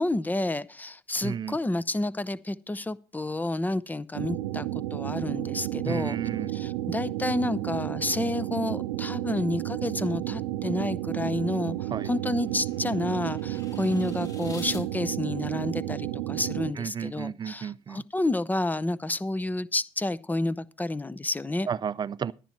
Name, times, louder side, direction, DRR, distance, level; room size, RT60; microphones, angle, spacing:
voice 1, 0.0-6.2 6.5-21.7, left 2 dB, 15° left, 0.8 m, -30 dB
voice 2, 1.2-1.6 5.8-6.5 11.9-12.1 16.8-18.0 21.7-22.3, right 7 dB, 35° right, 0.5 m, -32 dB
sound 1, 4.1-16.7, right 15 dB, 90° right, 0.7 m, -32 dB
sound 2, 11.3-14.8, left 2 dB, 30° left, 3.7 m, -49 dB
11.5 x 10.5 x 4.4 m
supercardioid pair, 80°, 13 cm